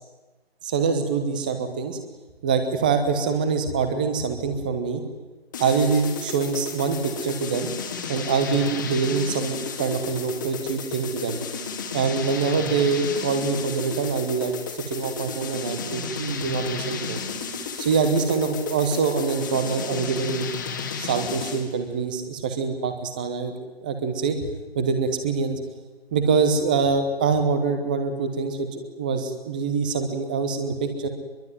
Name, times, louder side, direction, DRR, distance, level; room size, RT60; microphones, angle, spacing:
voice 1, 0.6-2.0 2.4-5.0 5.6-7.7 8.1-11.4 11.9-17.2 17.8-20.5 21.0-25.6 26.1-31.1, right 5 dB, 10° right, 8 dB, 1.1 m, -25 dB
sound 1, 5.5-21.7, left 5 dB, 20° left, 1.9 m, -33 dB
24.5 x 22.5 x 9.4 m, 1.2 s
figure-of-eight pair, 160°, 31 cm